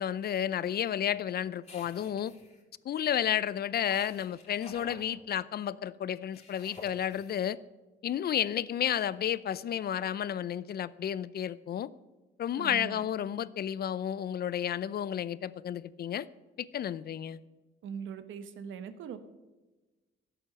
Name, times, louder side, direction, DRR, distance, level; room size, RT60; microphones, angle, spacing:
voice 1, 0.0-2.3 2.8-7.6 8.0-11.9 12.4-16.3 16.6-17.4, left 10 dB, 50° left, 0.5 m, -32 dB
sound 1, 1.6-2.6 3.8-5.0 6.3-7.3, left 3 dB, 35° left, 3.9 m, -50 dB
voice 2, 12.6-13.0 17.8-19.2, right 7 dB, 80° right, 1.2 m, -41 dB
12.0 x 7.9 x 7.7 m
cardioid pair, 90°, 20 cm